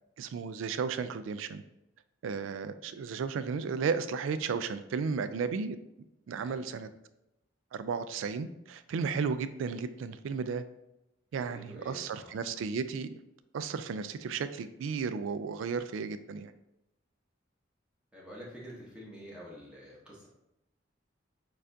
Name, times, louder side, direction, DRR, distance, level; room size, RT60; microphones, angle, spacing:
voice 1, 0.2-1.6 2.2-5.8 6.3-6.9 7.7-10.6 11.3-13.1 13.5-16.5, right 5 dB, 80° right, 12 dB, 0.3 m, -34 dB
voice 2, 6.4-6.8 11.4-12.4 18.1-20.3, equal, 5° right, -6 dB, 0.8 m, -48 dB
6.5 x 2.4 x 2.6 m, 0.90 s
head